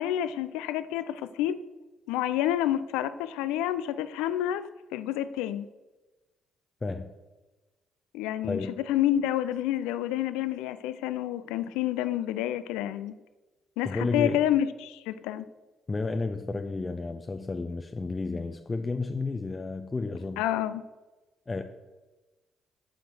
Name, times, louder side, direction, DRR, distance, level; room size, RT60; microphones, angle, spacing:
voice 1, 0.0-1.6 2.1-4.6 4.9-5.7 8.1-13.2 13.8-15.5 20.4-20.8, left 12 dB, 70° left, 13 dB, 0.4 m, -29 dB
voice 2, 8.4-8.8 13.8-14.4 15.9-20.4 21.5-21.6, left 3 dB, 25° left, 6 dB, 0.7 m, -32 dB
10.5 x 5.1 x 6.1 m, 1.1 s
figure-of-eight pair, 45°, 0 cm